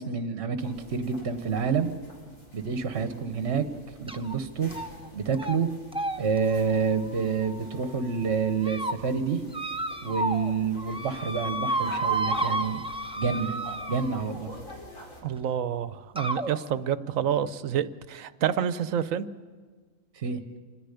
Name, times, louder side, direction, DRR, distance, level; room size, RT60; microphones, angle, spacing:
voice 1, 0.0-1.9 2.5-3.7 4.0-4.7 5.1-5.7 6.2-9.4 10.0-12.8 13.2-13.6 13.9-14.5 20.1-20.4, right 5 dB, 55° right, 8 dB, 1.3 m, -28 dB
sound 1, 0.6-15.2, left 1 dB, 75° left, 5.1 m, -47 dB
sound 2, 4.1-4.3 4.7-5.1 5.3-5.6 5.9-7.8 8.4-8.9 9.5-10.5 10.8-14.4 15.4-15.5 16.2-16.5, right 2 dB, 5° right, 0.7 m, -32 dB
voice 2, 15.2-19.3, right 9 dB, 80° right, 14 dB, 1.1 m, -28 dB
26.5 x 10.5 x 10.0 m, 1.5 s
omnidirectional pair, 1.4 m